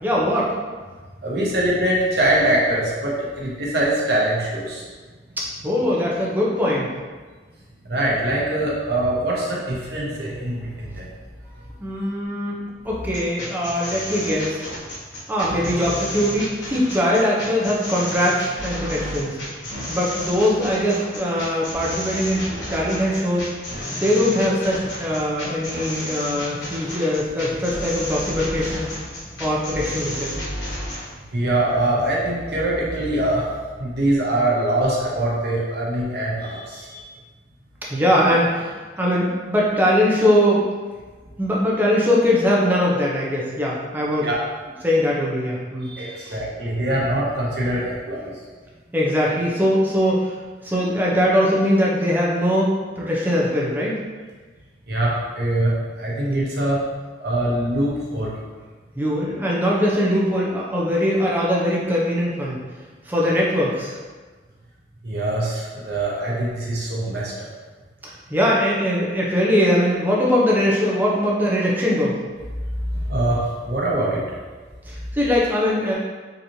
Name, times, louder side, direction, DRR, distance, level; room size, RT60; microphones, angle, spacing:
voice 1, 0.0-0.5 5.6-6.9 11.8-12.6 12.8-14.6 15.3-19.4 19.9-22.4 22.7-23.5 23.9-28.9 29.4-30.4 37.9-40.6 41.4-44.3 44.8-46.4 48.9-52.7 53.0-54.0 58.9-62.6 63.0-64.0 68.0-72.2 74.9-75.9, equal, 10° right, -5 dB, 0.6 m, -21 dB
voice 2, 1.2-4.8 7.8-11.1 31.3-33.5 33.8-37.0 44.2-44.4 45.8-48.3 54.9-56.8 57.2-58.3 65.0-67.5 72.9-74.2, right 1 dB, 60° right, -4 dB, 0.9 m, -23 dB
sound 1, 13.1-31.0, equal, 85° left, 1.1 m, -31 dB
3.9 x 3.0 x 2.7 m, 1.4 s
head